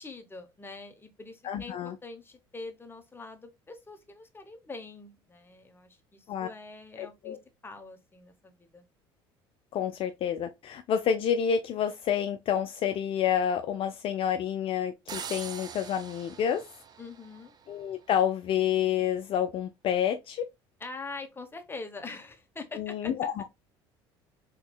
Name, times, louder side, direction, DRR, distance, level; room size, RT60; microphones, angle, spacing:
voice 1, 0.0-7.4 7.6-8.8 17.0-17.5 20.8-23.1, left 3 dB, 20° left, 0.8 m, -44 dB
voice 2, 1.4-2.0 6.3-6.5 7.0-7.4 9.7-16.7 17.7-20.4 22.7-23.4, left 9 dB, 50° left, 0.4 m, -29 dB
sound 1, 15.1-17.9, right 7 dB, 35° right, 0.4 m, -43 dB
3.6 x 3.0 x 2.2 m
hypercardioid pair, 70°, 12 cm